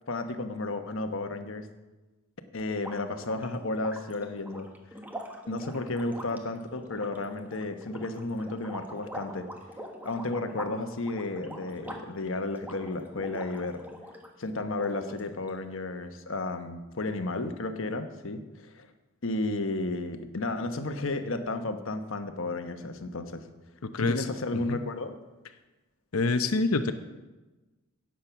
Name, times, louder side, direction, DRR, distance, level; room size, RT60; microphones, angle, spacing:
voice 1, 0.1-1.7 2.5-4.7 5.5-9.5 10.0-13.8 14.4-18.9 19.2-23.4 24.0-25.2, left 2 dB, 65° left, 7 dB, 1.1 m, -33 dB
sound 1, 2.7-14.3 14.7-15.5, equal, 10° right, 1.4 m, -44 dB
voice 2, 23.8-24.3 24.5-24.8 26.1-26.9, left 3 dB, 90° left, 8 dB, 0.8 m, -26 dB
17.0 x 7.7 x 5.9 m, 1.1 s
head